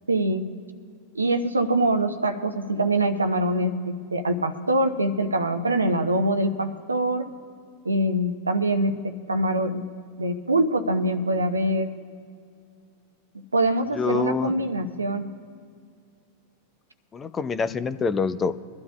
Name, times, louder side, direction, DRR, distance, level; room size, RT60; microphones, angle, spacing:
voice 1, 0.1-0.5 1.1-7.3 7.8-9.8 10.2-11.9 13.5-15.3, right 1 dB, 80° right, 8 dB, 0.9 m, -24 dB
voice 2, 13.9-14.5 17.1-18.5, left 5 dB, 20° left, 13 dB, 0.6 m, -26 dB
23.0 x 12.5 x 2.3 m, 2.3 s
figure-of-eight pair, 90°, 0 cm